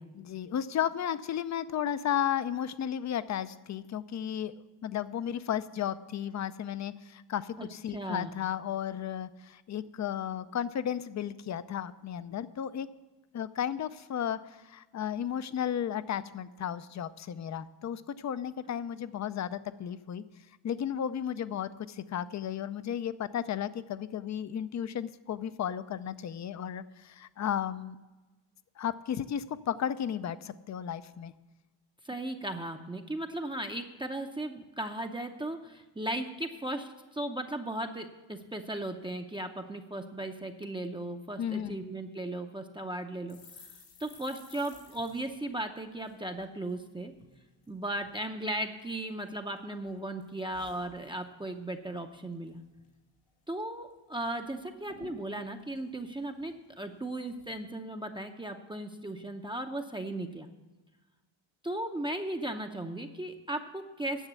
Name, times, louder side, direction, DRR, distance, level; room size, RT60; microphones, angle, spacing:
voice 1, 0.1-4.5 4.8-12.9 13.3-20.2 20.6-28.0 28.8-31.3 41.4-41.8, left 9 dB, 35° left, 15 dB, 0.5 m, -34 dB
voice 2, 7.6-8.3 32.0-43.4 44.0-47.1 47.7-52.6 53.5-60.5 61.6-64.3, right 1 dB, 10° right, 4 dB, 0.6 m, -36 dB
sound 1, 43.3-46.8 47.1-47.3 47.6-48.2 48.8-49.6 49.9-51.5 51.8-52.1 52.3-52.9 53.3-53.4 53.6-54.3 54.6-54.7 54.9-56.8 57.3-57.6, left 4 dB, 85° left, 3.8 m, -56 dB
10.0 x 7.2 x 8.3 m, 1.2 s
cardioid pair, 115°, 48 cm